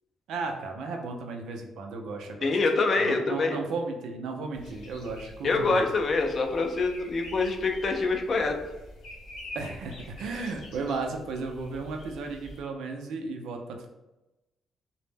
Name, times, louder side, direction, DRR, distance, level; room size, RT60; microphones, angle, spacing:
voice 1, 0.3-2.5 3.0-5.8 9.5-13.9, right 3 dB, 80° right, 3 dB, 0.4 m, -34 dB
voice 2, 2.4-3.6 5.4-8.6, left 3 dB, 45° left, 4 dB, 0.4 m, -25 dB
sound 1, 4.5-12.6, left 1 dB, 80° left, 0.8 m, -46 dB
2.0 x 2.0 x 3.2 m, 0.98 s
cardioid pair, 90°, 0 cm